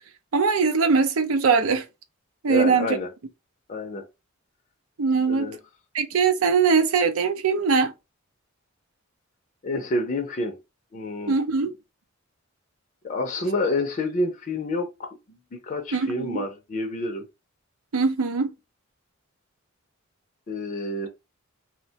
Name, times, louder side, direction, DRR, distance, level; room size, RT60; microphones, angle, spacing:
voice 1, 0.3-1.9 2.4-2.9 5.0-5.6 5.9-7.9 11.3-11.7 15.9-16.4 17.9-18.5, right 5 dB, 90° right, 0.5 m, -21 dB
voice 2, 2.5-3.1 3.7-4.1 5.3-5.6 9.6-10.6 10.9-11.3 13.0-15.4 15.6-17.3 20.5-21.1, left 2 dB, 40° left, 0.5 m, -28 dB
2.9 x 2.1 x 2.7 m
head